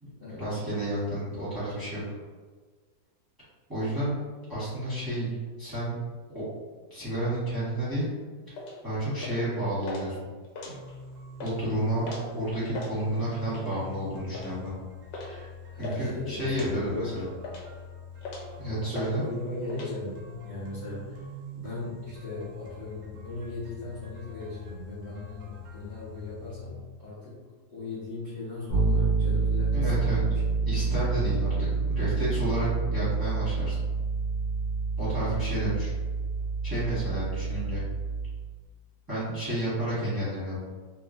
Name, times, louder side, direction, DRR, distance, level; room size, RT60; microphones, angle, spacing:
voice 1, 0.4-2.0 3.7-4.2 4.5-6.0 6.3-6.4 6.9-8.1 8.8-10.1 11.4-14.7 15.2-15.4 15.8-17.3 18.6-19.2 29.7-30.2 30.6-31.5 31.9-33.8 35.0-35.9 36.6-37.8 39.1-40.6, right 1 dB, 15° right, -13 dB, 1.2 m, -30 dB
sound 1, 8.5-8.8 9.2-9.5 9.8-10.0 10.4-11.0 11.3-11.6 12.0-12.3 12.6-12.9 13.5-13.8 14.3-14.5 15.1-15.3 15.6-16.0 16.5-16.7 17.2-17.8 18.2-18.5 18.9-19.1 19.4-19.9, left 2 dB, 85° left, 1.3 m, -39 dB
sound 2, 10.6-26.7, left 2 dB, 55° right, 0.8 m, -44 dB
voice 2, 15.7-17.1 19.1-21.3 21.5-27.4 27.7-30.6 35.0-35.5, left 2 dB, 35° left, -12 dB, 1.1 m, -38 dB
Bass guitar, 28.7-38.6, right 4 dB, 65° left, 1.5 m, -28 dB
3.0 x 2.8 x 2.5 m, 1.4 s
omnidirectional pair, 1.8 m